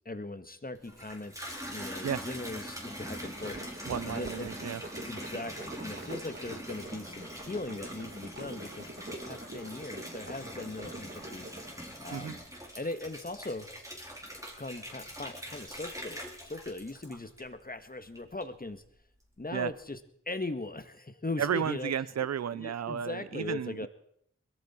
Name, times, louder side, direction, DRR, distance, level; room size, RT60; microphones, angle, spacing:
voice 1, 0.0-1.3 1.7-4.5 5.1-12.4 12.7-13.7 14.6-18.8 19.4-20.0 20.3-22.1 22.5-23.9, left 2 dB, 30° left, 10 dB, 1.5 m, -39 dB
Water tap faucet / Bathtub (filling or washing), 0.8-17.7 18.2-18.7, equal, 10° right, 3.7 m, -43 dB
sound 1, 2.9-11.8, right 2 dB, 35° right, 1.7 m, -45 dB
voice 2, 3.9-4.8 12.1-12.3 19.5-19.7 21.4-23.9, right 8 dB, 60° right, 19 dB, 0.5 m, -33 dB
21.5 x 14.0 x 4.4 m, 0.69 s
wide cardioid pair, 50°, 30 cm